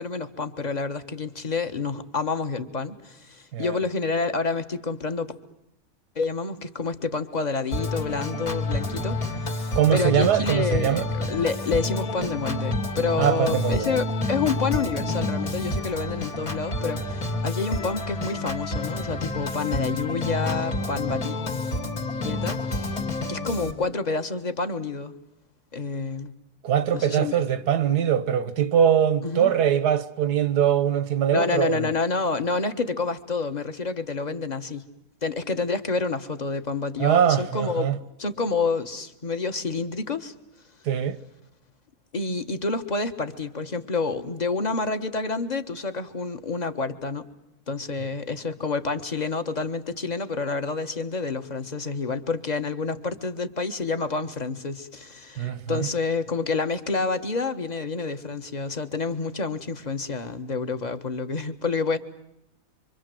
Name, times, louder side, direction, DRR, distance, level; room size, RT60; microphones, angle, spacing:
voice 1, 0.0-5.3 6.1-21.4 22.2-23.0 23.3-25.1 25.7-26.3 26.9-27.4 29.2-29.5 31.3-34.8 35.2-37.9 38.2-40.3 42.1-47.3 47.7-62.0, left 4 dB, 30° left, 1.4 m, -28 dB
Organ, 7.7-23.7, left 2 dB, 60° left, 3.3 m, -29 dB
voice 2, 9.7-11.1 13.2-13.9 26.6-31.9 37.0-38.0 40.9-41.2 55.4-55.9, right 9 dB, 85° right, 1.7 m, -22 dB
25.5 x 25.5 x 7.8 m
omnidirectional pair, 1.7 m